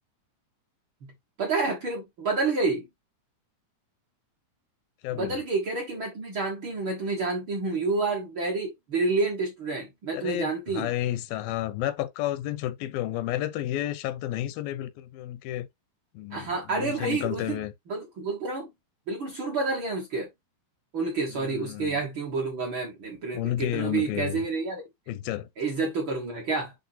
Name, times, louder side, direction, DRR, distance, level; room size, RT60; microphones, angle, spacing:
voice 1, 1.4-2.8 5.1-10.9 16.3-17.6 17.9-18.7 19.1-20.3 20.9-24.8 25.6-26.7, right 3 dB, 50° right, 1.6 m, -29 dB
voice 2, 5.0-5.4 10.1-15.7 16.1-17.7 21.3-22.0 23.3-24.4 25.1-25.5, left 13 dB, 85° left, 2.5 m, -31 dB
10.5 x 3.5 x 2.7 m
omnidirectional pair, 4.1 m